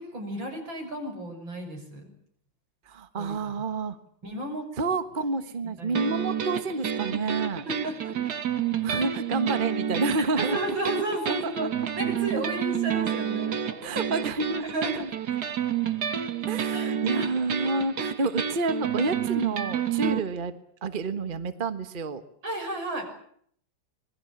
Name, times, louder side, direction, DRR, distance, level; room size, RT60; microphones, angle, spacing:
voice 1, 0.0-2.1 3.2-3.4 4.2-4.7 5.8-6.1 7.7-8.1 10.1-11.7 12.0-14.0 14.6-15.1 16.7-17.3 20.0-20.1 22.4-23.1, right 1 dB, 80° right, 4 dB, 7.2 m, -33 dB
voice 2, 2.9-4.0 4.8-7.6 8.8-10.6 11.3-11.7 12.9-13.0 13.8-14.7 15.0-15.1 16.5-20.5 20.8-22.2, right 3 dB, 30° right, 9 dB, 1.4 m, -29 dB
sound 1, 6.0-20.2, right 9 dB, 60° right, 1.9 m, -30 dB
26.0 x 21.5 x 7.2 m, 0.64 s
omnidirectional pair, 2.1 m